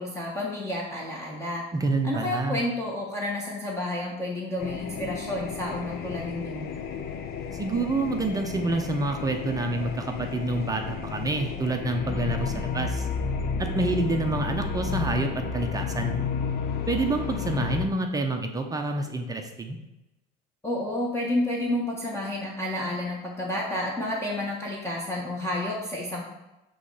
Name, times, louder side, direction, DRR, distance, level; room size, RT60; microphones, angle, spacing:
voice 1, 0.0-1.6 2.0-6.7 20.6-26.2, left 1 dB, 15° left, -3 dB, 1.2 m, -30 dB
voice 2, 1.7-2.6 7.5-13.1 13.6-16.1 16.9-19.8, right 2 dB, 20° right, 3 dB, 0.6 m, -28 dB
sound 1, 4.6-17.9, left 6 dB, 50° left, 0.8 m, -32 dB
8.3 x 3.1 x 5.5 m, 0.95 s
cardioid pair, 120°, 20 cm